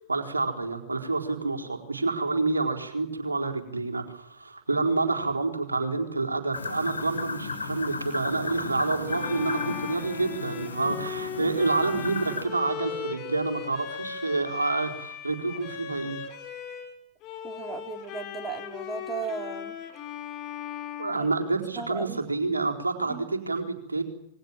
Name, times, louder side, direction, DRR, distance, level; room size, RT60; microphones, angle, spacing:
voice 1, 0.1-16.3 21.0-24.0, right 3 dB, 90° right, 4 dB, 4.3 m, -28 dB
sound 1, 6.5-12.4, left 4 dB, 85° left, 5.7 m, -35 dB
Bowed string instrument, 9.1-16.9 17.2-22.0, left 9 dB, 40° left, 6.6 m, -38 dB
voice 2, 17.4-19.7 21.2-21.3 21.8-22.2 23.1-23.3, right 5 dB, 20° right, 5 dB, 4.0 m, -36 dB
27.5 x 22.5 x 7.5 m, 0.77 s
figure-of-eight pair, 100°, 0 cm